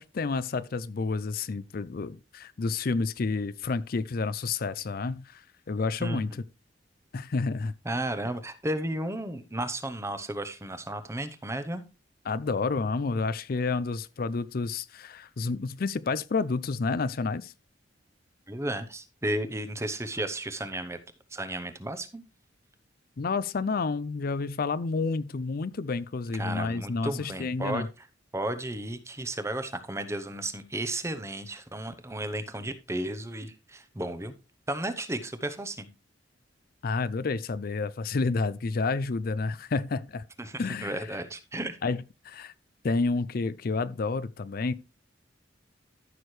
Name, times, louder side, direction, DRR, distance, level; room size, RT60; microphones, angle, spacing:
voice 1, 0.0-5.4 5.7-6.4 7.1-7.7 12.3-17.5 23.2-27.9 36.8-40.2 40.6-41.2 41.8-42.5 42.8-44.7, left 4 dB, 50° left, 0.4 m, -30 dB
voice 2, 7.8-11.8 18.5-21.0 21.3-22.2 26.3-27.9 28.3-34.3 34.7-35.9 40.4-41.8, right 1 dB, 15° right, 0.8 m, -33 dB
14.0 x 6.3 x 3.2 m
head